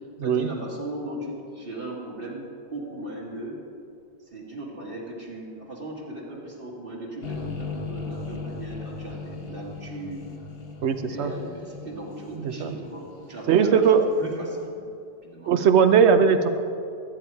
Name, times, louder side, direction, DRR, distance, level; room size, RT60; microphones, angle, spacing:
voice 1, 0.2-3.6 4.3-10.2 11.0-14.8 15.2-15.5, right 1 dB, 60° right, -3 dB, 1.9 m, -37 dB
sound 1, 7.2-14.3, left 4 dB, 65° left, 1.1 m, -38 dB
voice 2, 10.8-11.3 12.3-12.7 13.5-14.1 15.5-16.5, right 7 dB, 90° right, 9 dB, 1.0 m, -19 dB
13.5 x 8.6 x 4.6 m, 2.4 s
omnidirectional pair, 1.1 m